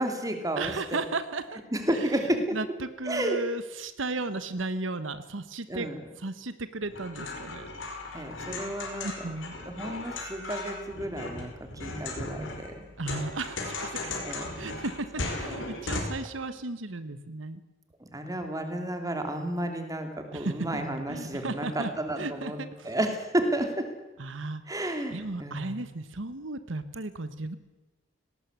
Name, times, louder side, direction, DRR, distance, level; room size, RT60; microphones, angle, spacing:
voice 1, 0.0-0.7 1.7-2.6 3.1-3.4 5.7-6.0 8.1-9.1 9.7-12.9 14.2-14.4 15.5-15.6 18.1-22.6 22.8-23.9 24.7-25.8, right 1 dB, 20° right, 5 dB, 2.9 m, -31 dB
voice 2, 0.6-1.6 1.9-5.9 6.2-7.7 9.0-9.5 13.0-17.6 20.3-23.0 24.2-24.6 25.1-27.6, right 2 dB, 85° right, 12 dB, 1.2 m, -35 dB
sound 1, 6.8-16.0, left 2 dB, 85° left, 5.0 m, -37 dB
18.5 x 18.5 x 8.2 m, 1.1 s
head